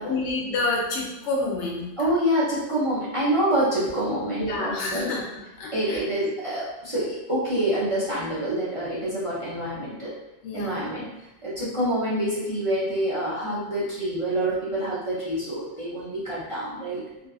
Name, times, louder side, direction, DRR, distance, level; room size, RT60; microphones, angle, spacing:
voice 1, 0.0-2.1 4.4-5.2 5.6-6.0 10.4-10.8, left 3 dB, 80° left, -1 dB, 0.9 m, -28 dB
voice 2, 2.0-5.1 5.7-10.1 10.5-11.1 11.4-17.0, right 1 dB, 35° right, -10 dB, 0.7 m, -26 dB
2.7 x 2.3 x 2.3 m, 1.0 s
omnidirectional pair, 1.1 m